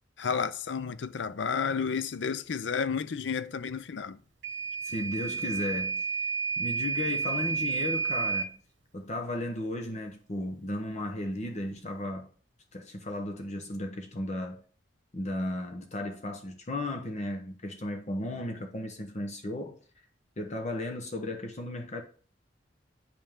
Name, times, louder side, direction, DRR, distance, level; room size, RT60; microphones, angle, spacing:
voice 1, 0.2-4.2, left 6 dB, 70° left, 0.5 m, -31 dB
Microwave oven / Alarm, 4.4-8.5, right 5 dB, 75° right, 0.9 m, -31 dB
voice 2, 4.8-6.0 6.6-8.6 8.9-12.3 12.7-14.6 15.1-19.8 20.4-22.0, left 1 dB, 40° left, 1.0 m, -35 dB
8.7 x 5.5 x 3.6 m
head